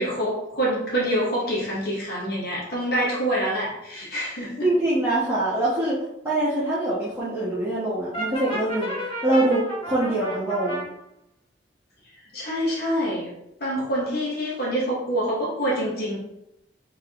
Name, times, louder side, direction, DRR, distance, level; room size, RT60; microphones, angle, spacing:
voice 1, 0.0-4.7 12.3-13.3 13.6-16.2, equal, 55° left, -4 dB, 1.1 m, -26 dB
voice 2, 4.6-6.0 6.2-8.9 9.2-10.8, right 1 dB, 15° right, -10 dB, 1.1 m, -24 dB
Brass instrument, 8.1-10.9, right 1 dB, 30° left, 1.1 m, -32 dB
4.4 x 3.4 x 2.9 m, 0.82 s
head